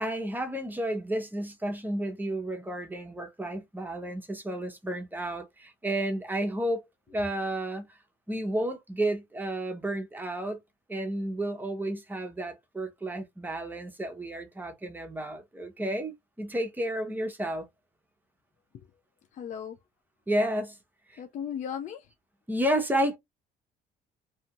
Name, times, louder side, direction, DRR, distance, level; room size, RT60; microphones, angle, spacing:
voice 1, 0.0-8.0 8.3-10.6 10.9-17.7 20.3-20.8 21.1-21.2 22.5-23.2, right 1 dB, 10° right, 0.7 m, -31 dB
voice 2, 19.3-19.8 21.2-22.1, left 8 dB, 45° left, 0.4 m, -36 dB
2.7 x 2.3 x 2.9 m
cardioid pair, 110°, 17 cm